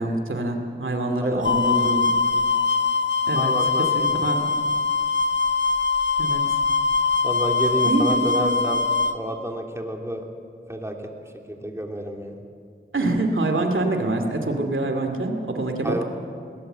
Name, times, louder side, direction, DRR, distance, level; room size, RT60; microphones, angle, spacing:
voice 1, 0.0-2.1 3.3-4.5 6.2-6.4 7.8-8.0 8.3-8.5 12.9-16.0, right 2 dB, 85° right, 4 dB, 2.6 m, -25 dB
sound 1, 1.4-9.1, left 4 dB, 65° left, 1.2 m, -22 dB
voice 2, 3.4-4.3 7.2-8.8 9.1-10.2 10.7-11.0 11.2-12.4 15.8-16.0, equal, 15° right, 1 dB, 3.2 m, -29 dB
21.0 x 19.5 x 8.0 m, 2.2 s
wide cardioid pair, 40°, 20 cm